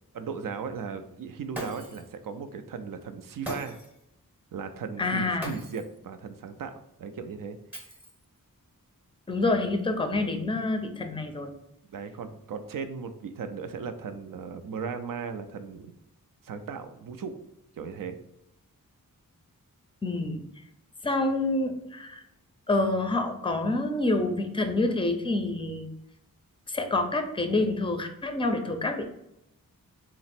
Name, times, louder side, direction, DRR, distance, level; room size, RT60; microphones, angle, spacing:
voice 1, 0.1-3.8 4.5-7.6 11.9-15.9 16.4-17.3 17.8-18.2, right 6 dB, 70° right, 9 dB, 0.5 m, -37 dB
Shatter, 1.5-2.2 3.4-4.0 5.4-6.0 7.7-8.4, equal, 5° right, 0.8 m, -40 dB
voice 2, 5.0-5.5 9.3-11.5 20.0-20.4 21.0-22.2 22.7-25.9 26.7-29.1, left 2 dB, 15° left, 6 dB, 0.5 m, -27 dB
4.1 x 2.0 x 4.1 m, 0.81 s
wide cardioid pair, 90°, 35 cm